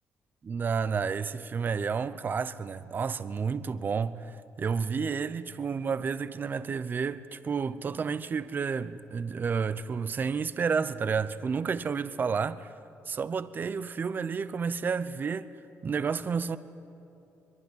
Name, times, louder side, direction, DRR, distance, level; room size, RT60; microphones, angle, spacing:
voice 1, 0.4-12.7 13.1-15.5 15.8-16.6, right 5 dB, 40° right, 0.8 m, -31 dB
23.5 x 23.0 x 9.7 m
cardioid pair, 100°, 5 cm